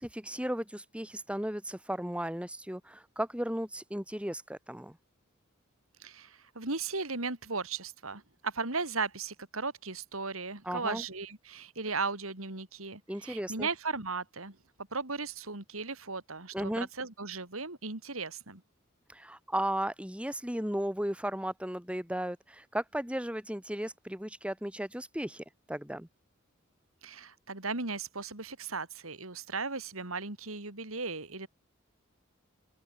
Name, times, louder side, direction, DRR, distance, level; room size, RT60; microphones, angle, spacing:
voice 1, 0.0-5.0 10.6-11.0 13.1-13.7 16.5-16.9 19.1-26.1, right 1 dB, 5° right, 2.2 m, -35 dB
voice 2, 6.0-14.6 14.9-18.6 27.0-31.5, right 4 dB, 90° right, 4.2 m, -36 dB
open air
head